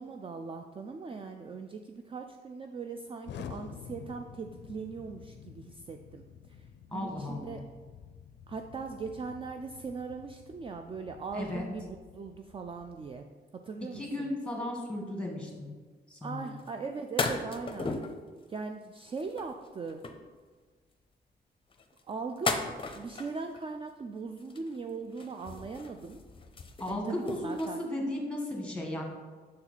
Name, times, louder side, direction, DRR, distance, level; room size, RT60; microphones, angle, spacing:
voice 1, 0.0-7.6 8.5-13.3 13.6-14.3 16.2-18.0 18.5-20.0 22.1-22.6 22.9-26.2 26.9-27.8, right 4 dB, 30° right, 5 dB, 0.3 m, -40 dB
Explosion, 3.2-13.2, left 7 dB, 90° left, 0.4 m, -49 dB
voice 2, 6.9-7.6 11.3-11.6 13.9-15.7 16.1-16.6 26.8-29.0, left 1 dB, 5° left, 0 dB, 1.5 m, -35 dB
sound 1, 16.6-16.7 17.2-18.2 19.0-20.3 21.7-23.6 24.4-24.9 25.1-27.7, left 3 dB, 30° left, 0.6 m, -36 dB
6.3 x 4.4 x 4.0 m, 1.5 s
cardioid pair, 100°, 18 cm